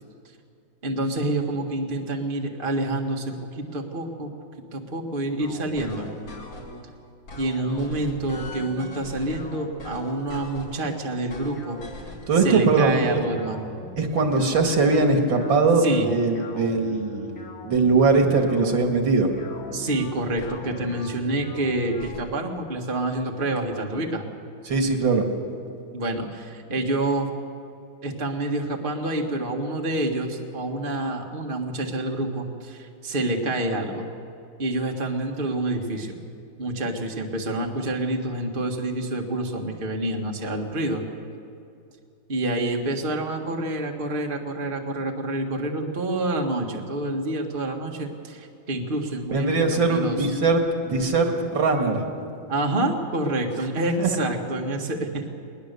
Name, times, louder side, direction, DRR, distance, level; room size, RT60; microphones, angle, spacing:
voice 1, 0.8-4.3 4.7-6.1 7.4-11.8 12.4-13.7 15.8-16.1 19.7-24.2 25.9-27.3 28.0-34.1 34.6-36.2 36.6-41.0 42.3-50.3 52.5-55.3, right 1 dB, 30° right, 2 dB, 1.7 m, -27 dB
sound 1, 5.4-6.8 7.3-10.9 11.3-22.2, left 2 dB, 75° left, 2.9 m, -41 dB
voice 2, 12.3-13.2 14.0-17.3 17.6-19.3 24.7-25.3 49.3-52.0 54.0-54.2, right 3 dB, 80° right, 3 dB, 2.6 m, -21 dB
20.5 x 20.0 x 6.8 m, 2.6 s
omnidirectional pair, 2.1 m